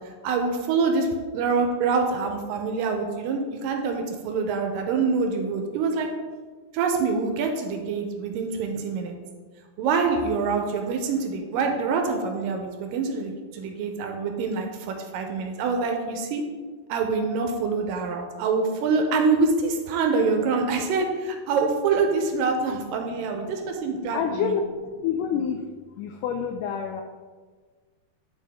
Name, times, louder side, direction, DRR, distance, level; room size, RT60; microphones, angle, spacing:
voice 1, 0.2-1.1 1.3-6.1 6.7-9.2 9.8-16.4 16.9-24.5, right 4 dB, 80° right, 4 dB, 2.2 m, -25 dB
voice 2, 24.0-25.7 26.0-27.0, left 7 dB, 90° left, 5 dB, 1.8 m, -28 dB
10.0 x 4.2 x 3.5 m, 1.5 s
omnidirectional pair, 4.2 m